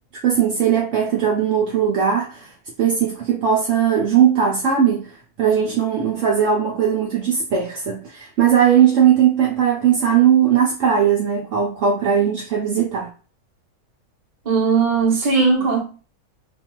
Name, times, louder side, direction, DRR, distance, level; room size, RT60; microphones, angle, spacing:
voice 1, 0.2-2.5 2.8-5.1 5.4-13.1, right 8 dB, 70° right, 0.8 m, -18 dB
voice 2, 14.5-15.8, right 4 dB, 35° right, 0.8 m, -18 dB
2.5 x 2.3 x 2.9 m
omnidirectional pair, 1.5 m